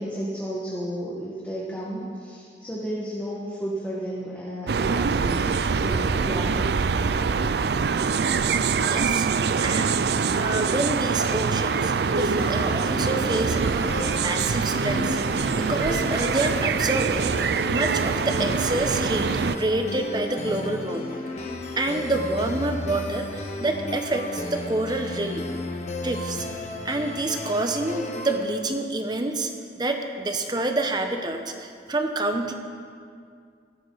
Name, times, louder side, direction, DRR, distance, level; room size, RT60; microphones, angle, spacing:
voice 1, 0.0-6.7, right 1 dB, 10° left, -7 dB, 1.6 m, -32 dB
sound 1, 4.7-19.6, right 5 dB, 70° right, 0.4 m, -24 dB
voice 2, 8.9-9.3 9.6-10.0 10.3-15.2 15.6-21.2 21.8-25.5 26.0-26.5 26.8-32.5, right 2 dB, 25° right, 5 dB, 0.9 m, -28 dB
sound 2, 12.4-28.4, left 1 dB, 40° left, 1.2 m, -34 dB
16.0 x 13.5 x 4.0 m, 2.2 s
head